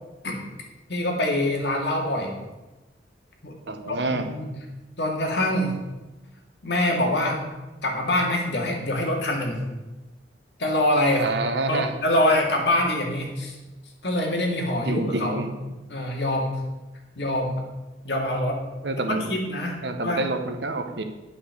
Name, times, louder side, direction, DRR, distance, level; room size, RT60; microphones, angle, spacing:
voice 1, 0.9-2.3 3.4-3.6 3.9-4.5 5.0-5.8 6.6-7.4 7.8-9.6 10.6-11.3 11.7-13.5 14.0-15.5 15.9-16.6 17.2-17.6 18.0-18.6 19.1-20.3, left 1 dB, 70° left, 1 dB, 2.1 m, -25 dB
voice 2, 3.7-4.3 11.2-11.9 14.9-15.6 18.8-19.3 19.8-21.0, right 2 dB, 75° right, 6 dB, 1.0 m, -27 dB
10.0 x 5.7 x 6.6 m, 1.1 s
head